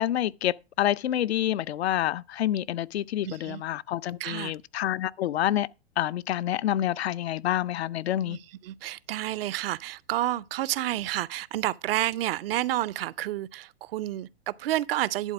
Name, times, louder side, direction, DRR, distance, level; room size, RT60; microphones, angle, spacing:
voice 1, 0.0-5.7 6.0-8.4, left 12 dB, 75° left, 0.5 m, -28 dB
voice 2, 3.2-3.6 4.2-4.6 8.2-15.3, right 14 dB, 65° right, 0.5 m, -30 dB
11.0 x 4.0 x 5.9 m
hypercardioid pair, 110°, 32 cm